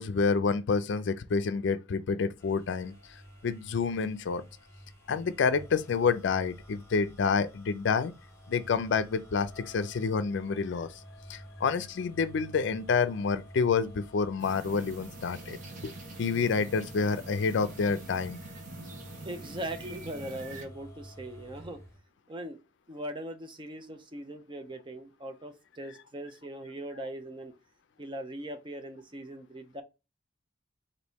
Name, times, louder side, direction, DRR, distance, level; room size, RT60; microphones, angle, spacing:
voice 1, 0.0-2.9 3.4-4.4 5.1-8.1 8.5-10.9 11.3-15.6 15.8-15.9 16.2-18.4, left 5 dB, 65° left, 0.4 m, -28 dB
sound 1, 2.4-22.0, equal, 15° left, 1.2 m, -50 dB
sound 2, 14.4-20.6, right 3 dB, 40° right, 0.9 m, -45 dB
voice 2, 19.2-21.8 22.3-22.6 22.9-27.5 28.0-29.8, right 1 dB, 25° right, 0.6 m, -40 dB
4.0 x 2.6 x 3.5 m
head